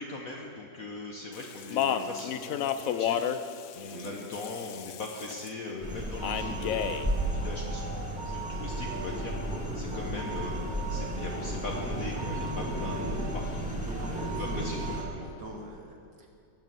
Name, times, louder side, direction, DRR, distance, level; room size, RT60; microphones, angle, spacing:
voice 1, 0.0-3.3 3.7-13.9 14.4-15.3, left 3 dB, 55° left, 0 dB, 1.4 m, -40 dB
Speech, 1.3-5.5 6.2-7.1, left 9 dB, 70° left, 0.8 m, -32 dB
sound 1, 5.8-15.0, right 1 dB, 5° right, 1.9 m, -33 dB
sound 2, 6.2-15.1, right 5 dB, 30° right, 1.4 m, -42 dB
voice 2, 13.8-14.7 15.2-16.3, right 2 dB, 70° right, 0 dB, 2.5 m, -43 dB
17.5 x 8.1 x 7.6 m, 2.5 s
omnidirectional pair, 2.0 m